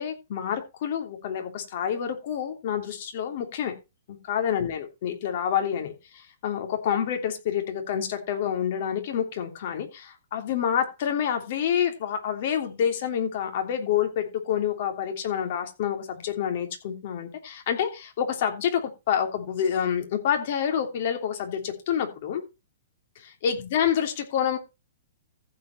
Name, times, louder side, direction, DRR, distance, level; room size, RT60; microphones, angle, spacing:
voice 1, 0.0-3.7 4.1-22.4 23.2-24.6, left 8 dB, 55° left, 5 dB, 3.1 m, -28 dB
15.0 x 5.1 x 4.5 m, 0.26 s
hypercardioid pair, 145°, 0 cm